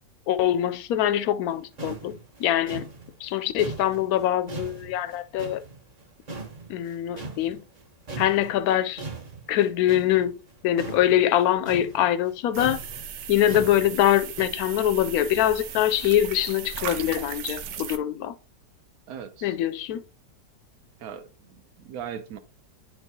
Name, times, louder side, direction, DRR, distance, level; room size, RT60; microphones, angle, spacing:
voice 1, 0.3-2.9 3.2-5.6 6.7-7.6 8.2-9.0 9.5-10.4 10.6-12.8 13.3-18.3 19.4-20.0, left 12 dB, 70° left, 1.0 m, -23 dB
sound 1, 1.5-1.6 1.8-6.0 6.3-7.8 8.1-14.5, right 3 dB, 35° right, 0.7 m, -39 dB
sound 2, 12.5-18.0, right 8 dB, 85° right, 1.3 m, -37 dB
voice 2, 19.1-19.6 21.0-22.4, right 8 dB, 65° right, 1.2 m, -39 dB
9.5 x 4.5 x 2.7 m
omnidirectional pair, 1.8 m